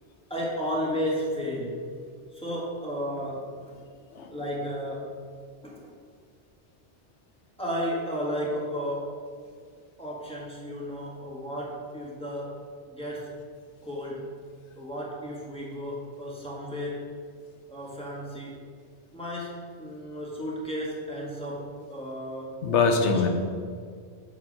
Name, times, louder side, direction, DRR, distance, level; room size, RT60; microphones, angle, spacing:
voice 1, 0.3-1.9 2.3-3.7 4.3-5.2 5.6-5.9 7.6-9.2 10.0-13.3 13.8-14.4 14.8-17.1 17.7-18.6 19.1-22.5 23.0-23.3, equal, 5° left, -5 dB, 1.4 m, -33 dB
voice 2, 22.6-23.3, left 5 dB, 85° left, 5 dB, 1.1 m, -23 dB
7.1 x 3.7 x 6.2 m, 2.1 s
omnidirectional pair, 1.2 m